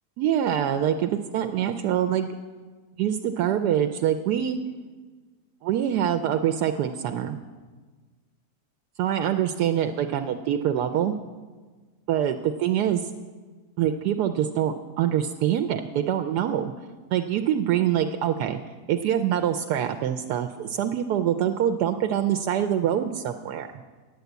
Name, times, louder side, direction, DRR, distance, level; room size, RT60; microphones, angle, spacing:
voice 1, 0.2-2.3 3.0-4.6 5.6-7.4 9.0-11.2 12.1-13.1 13.8-16.7 17.1-18.6 18.9-23.7, right 10 dB, 80° right, 6 dB, 1.1 m, -25 dB
9.6 x 8.2 x 7.9 m, 1.4 s
omnidirectional pair, 1.8 m